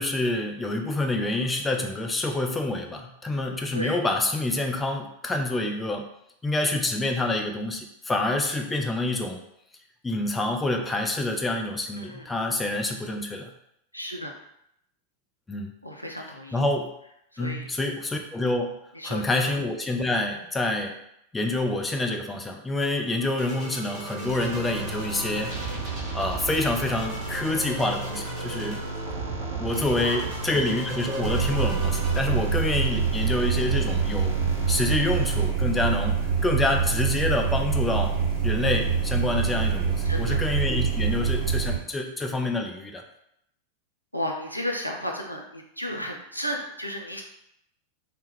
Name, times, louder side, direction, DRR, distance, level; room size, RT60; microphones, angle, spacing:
voice 1, 0.0-6.1 6.4-9.4 10.0-13.5 15.5-15.7 16.5-16.9 17.4-21.0 21.3-25.6 26.1-28.8 29.6-34.4 34.7-38.2 38.4-43.0, left 2 dB, 10° left, 3 dB, 0.3 m, -27 dB
voice 2, 12.0-12.3 13.9-14.4 15.8-16.6 17.3-17.7 18.9-19.5 23.9-24.0 29.9-30.6 33.2-33.4 40.0-40.4 44.1-47.2, equal, 90° left, 1 dB, 0.3 m, -34 dB
sound 1, 22.9-32.3, right 3 dB, 25° right, 0.9 m, -36 dB
sound 2, 24.2-35.5, right 2 dB, 70° right, 0.5 m, -36 dB
sound 3, 31.2-41.8, right 6 dB, 45° right, 1.0 m, -25 dB
2.2 x 2.0 x 3.0 m, 0.77 s
figure-of-eight pair, 90°, 0 cm